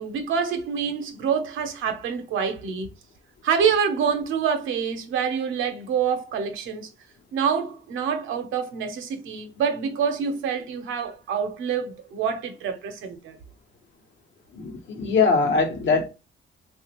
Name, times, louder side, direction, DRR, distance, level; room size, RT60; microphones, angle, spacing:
voice 1, 0.0-2.9 3.4-6.9 7.3-13.4, right 6 dB, 85° right, 0.7 m, -26 dB
voice 2, 14.5-16.1, left 4 dB, 70° left, 1.0 m, -22 dB
3.3 x 2.4 x 2.9 m
cardioid pair, 90°, 20 cm